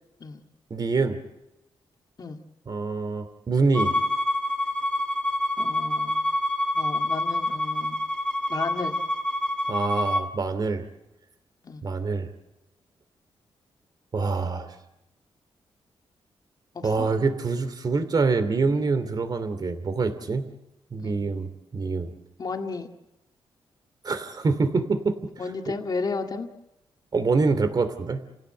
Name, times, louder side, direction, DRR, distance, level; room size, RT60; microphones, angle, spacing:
voice 1, 0.7-1.2 2.7-3.9 9.7-10.8 11.8-12.3 14.1-14.7 16.8-20.4 20.9-22.1 24.0-25.2 27.1-28.2, right 4 dB, 45° right, 10 dB, 2.7 m, -25 dB
Bowed string instrument, 3.7-10.3, left 1 dB, 10° left, 1.9 m, -26 dB
voice 2, 5.6-6.2 6.7-8.0 8.5-9.0 11.6-11.8 16.7-17.1 21.0-21.3 22.4-22.9 25.4-26.5, left 4 dB, 45° left, 4 dB, 2.2 m, -33 dB
29.5 x 16.5 x 7.9 m, 0.92 s
cardioid pair, 100°, 10 cm